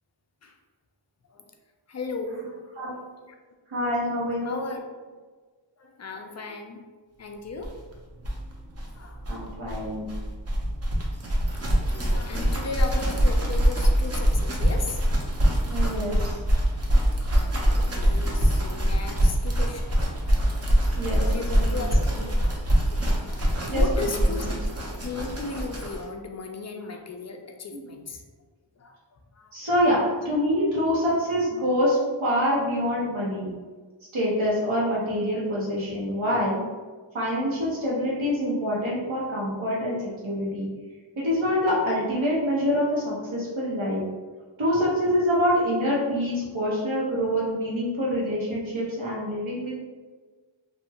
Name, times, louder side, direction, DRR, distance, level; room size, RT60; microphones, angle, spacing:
voice 1, 1.9-3.3 4.4-4.8 5.8-6.8 7.2-7.7 8.9-9.2 11.9-15.0 15.7-16.3 17.6-19.9 20.5-20.6 21.0-22.0 22.4-22.5 23.1-24.5 25.0-28.2 28.8-29.0 29.3-29.8, left 3 dB, 35° left, 3 dB, 0.4 m, -36 dB
voice 2, 3.7-4.6 9.3-10.1 15.7-16.1 21.0-21.2 21.6-21.8 23.7-24.1 27.7-27.8 29.5-30.0 30.2-33.5 34.1-36.6 37.1-40.7 41.2-44.0 44.6-49.8, equal, 75° right, -6 dB, 1.2 m, -25 dB
sound 1, 7.6-7.7 7.9-26.1, equal, 30° right, 0.6 m, -24 dB
2.7 x 2.4 x 2.8 m, 1.4 s
wide cardioid pair, 65°, 47 cm